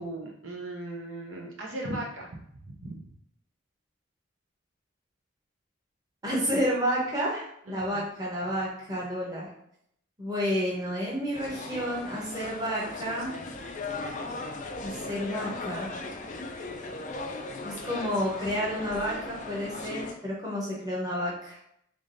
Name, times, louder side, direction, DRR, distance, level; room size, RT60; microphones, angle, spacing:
voice 1, 0.0-3.0 7.7-8.1, right 1 dB, 65° right, -1 dB, 0.6 m, -38 dB
voice 2, 6.2-9.5 10.2-13.3 14.8-16.0 17.6-21.6, equal, 20° right, -5 dB, 1.0 m, -30 dB
sound 1, 11.3-20.1, left 3 dB, 35° left, 0.4 m, -38 dB
3.7 x 3.5 x 2.6 m, 0.72 s
head